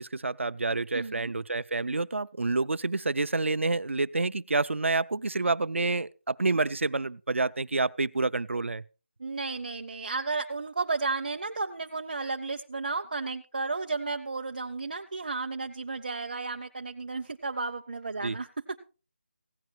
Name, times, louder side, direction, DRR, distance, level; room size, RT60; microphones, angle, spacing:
voice 1, 0.0-8.8 18.2-18.4, right 3 dB, 85° right, 0.6 m, -28 dB
voice 2, 0.9-1.3 9.2-18.8, right 3 dB, 40° right, 0.6 m, -33 dB
16.5 x 10.5 x 4.5 m
figure-of-eight pair, 175°, 7 cm